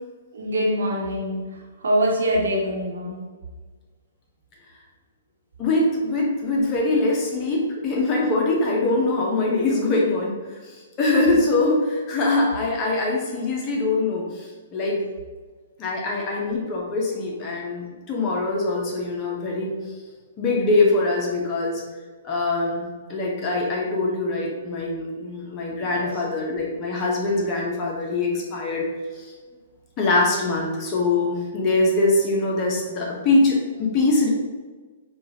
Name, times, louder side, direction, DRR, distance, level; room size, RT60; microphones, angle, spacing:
voice 1, 0.3-1.4 1.8-3.1 25.8-26.1, equal, 75° right, -2 dB, 1.1 m, -24 dB
voice 2, 5.6-10.4 10.6-15.0 15.8-19.8 20.4-21.8 22.2-28.9 29.1-29.3 30.0-34.3, left 2 dB, 30° left, -2 dB, 0.8 m, -23 dB
5.2 x 2.4 x 2.8 m, 1.4 s
hypercardioid pair, 125°, 0 cm